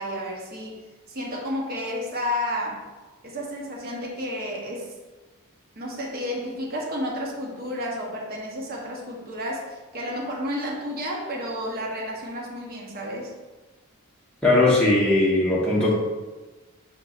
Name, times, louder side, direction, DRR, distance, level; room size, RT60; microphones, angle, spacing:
voice 1, 0.0-2.9 3.2-5.0 5.8-13.3, equal, 40° right, -1 dB, 0.8 m, -31 dB
voice 2, 14.4-15.9, left 2 dB, 5° left, -7 dB, 0.8 m, -19 dB
5.5 x 4.0 x 2.4 m, 1.2 s
head